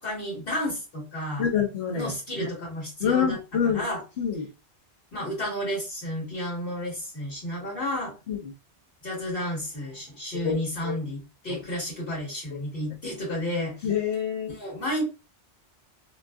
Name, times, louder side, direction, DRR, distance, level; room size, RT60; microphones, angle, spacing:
voice 1, 0.0-1.5 1.9-4.0 5.1-8.1 9.0-13.9 14.5-15.0, left 1 dB, 60° left, -6 dB, 1.6 m, -32 dB
voice 2, 1.4-2.5 3.0-3.8 4.2-4.5 8.3-8.4 10.3-10.6 10.8-10.9 11.5-11.6 12.5-12.6 13.8-14.5, left 7 dB, 80° left, -2 dB, 1.2 m, -27 dB
2.9 x 2.6 x 2.3 m, 0.28 s
omnidirectional pair, 1.1 m